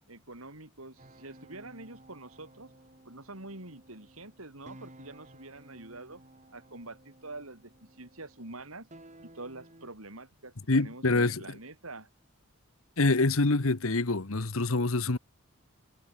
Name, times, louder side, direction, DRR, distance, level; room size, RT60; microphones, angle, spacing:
voice 1, 0.1-2.7 3.1-6.2 6.5-8.9 9.2-12.1, right 2 dB, 80° right, 7.3 m, -46 dB
sound 1, 1.0-9.9, right 1 dB, 35° right, 4.9 m, -55 dB
voice 2, 10.7-11.6 13.0-15.2, left 3 dB, 75° left, 1.3 m, -26 dB
head